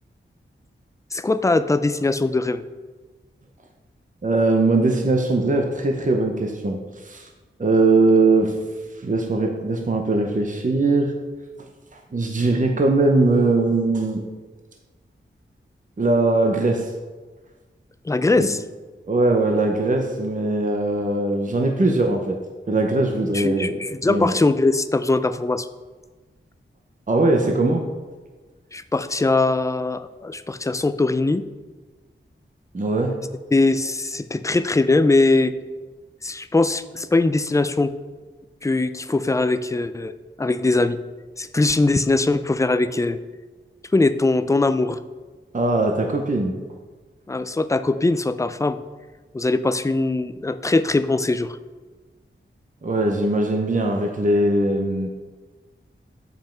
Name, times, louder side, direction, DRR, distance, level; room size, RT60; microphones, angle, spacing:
voice 1, 1.1-2.6 18.1-18.6 23.3-25.7 28.7-31.4 33.5-35.5 36.2-37.9 38.6-41.0 41.4-43.2 43.9-45.0 47.3-48.8 49.3-51.6, left 2 dB, 15° left, 12 dB, 0.4 m, -21 dB
voice 2, 4.2-7.3 7.6-8.5 8.9-11.1 11.6-14.2 16.0-16.9 18.4-18.5 19.1-22.4 22.7-24.4 27.1-27.8 32.7-33.2 45.5-46.6 52.8-55.1, right 2 dB, 40° right, 2 dB, 0.8 m, -20 dB
7.5 x 5.5 x 4.5 m, 1.3 s
wide cardioid pair, 80°, 21 cm